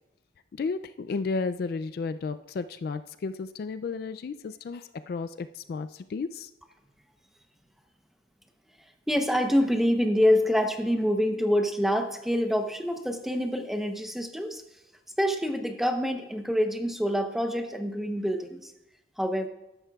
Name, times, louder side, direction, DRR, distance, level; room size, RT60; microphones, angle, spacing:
voice 1, 0.5-6.5, left 4 dB, 55° left, 11 dB, 0.3 m, -33 dB
voice 2, 9.1-14.6 15.2-18.7 19.2-19.5, equal, ahead, 5 dB, 0.8 m, -26 dB
13.5 x 11.0 x 2.3 m, 0.92 s
head